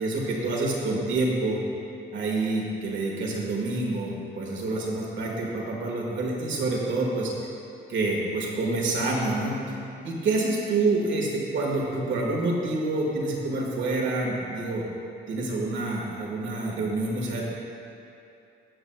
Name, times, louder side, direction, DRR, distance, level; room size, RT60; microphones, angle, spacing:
voice 1, 0.0-1.6 2.1-7.3 7.9-9.8 10.0-14.8 15.3-17.5, right 2 dB, 70° right, -2 dB, 1.8 m, -27 dB
17.5 x 6.1 x 2.3 m, 2.8 s
cardioid pair, 90°, 20 cm